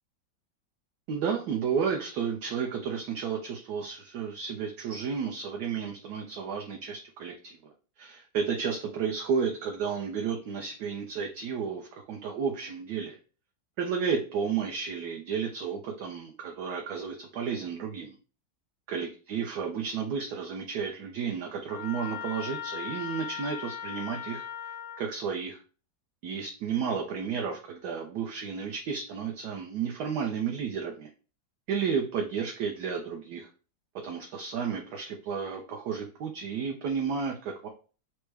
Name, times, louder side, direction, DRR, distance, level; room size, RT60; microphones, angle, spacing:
voice 1, 1.1-7.6 8.0-13.2 13.8-18.2 18.9-24.5 25.0-25.6 26.2-31.1 31.7-33.5 34.0-37.7, right 6 dB, 70° right, 1 dB, 1.0 m, -32 dB
Trumpet, 21.7-25.1, left 9 dB, 65° left, 0.9 m, -38 dB
4.5 x 2.1 x 4.6 m, 0.37 s
omnidirectional pair, 2.1 m